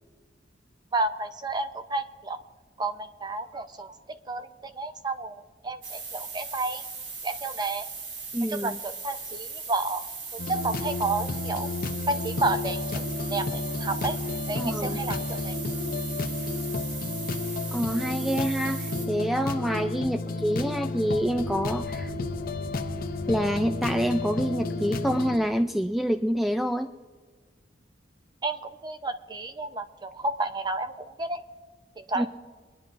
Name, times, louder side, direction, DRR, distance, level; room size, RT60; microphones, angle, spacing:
voice 1, 0.9-2.4 2.8-6.8 7.2-7.9 8.5-10.1 10.5-11.7 12.1-13.0 13.3-14.2 14.5-15.6 28.4-31.4 32.0-32.3, right 2 dB, 25° right, 8 dB, 0.7 m, -31 dB
sound 1, 5.8-19.1, right 4 dB, 90° right, 1.9 m, -38 dB
voice 2, 8.3-8.8 14.6-15.0 17.7-22.1 23.3-26.9 32.2-32.3, equal, ahead, 6 dB, 0.3 m, -27 dB
sound 2, 10.4-25.4, left 2 dB, 50° left, 0.7 m, -32 dB
sound 3, 21.0-26.2, equal, 60° right, 3.2 m, -44 dB
23.5 x 10.5 x 2.6 m, 1.5 s
head